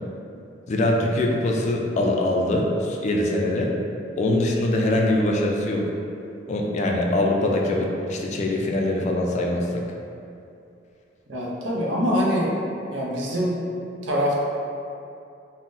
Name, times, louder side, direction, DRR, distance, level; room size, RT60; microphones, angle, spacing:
voice 1, 0.7-3.7 4.2-5.9 6.5-9.8, left 1 dB, 40° left, 0 dB, 0.3 m, -23 dB
voice 2, 11.3-12.5 12.9-13.6 14.0-14.4, equal, 80° right, -3 dB, 0.5 m, -24 dB
3.7 x 2.0 x 2.5 m, 2.6 s
head